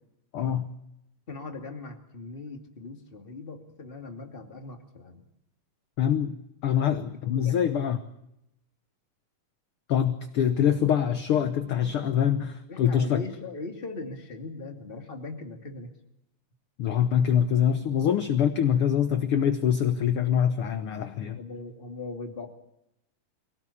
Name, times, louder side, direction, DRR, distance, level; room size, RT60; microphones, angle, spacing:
voice 1, 0.3-0.7 6.0-6.4 6.6-8.0 9.9-13.2 16.8-21.4, left 9 dB, 60° left, 9 dB, 1.6 m, -24 dB
voice 2, 1.3-5.2 7.3-7.6 12.7-15.9 21.3-22.5, left 3 dB, 20° left, 3 dB, 2.4 m, -39 dB
25.0 x 17.5 x 8.6 m, 0.84 s
omnidirectional pair, 3.5 m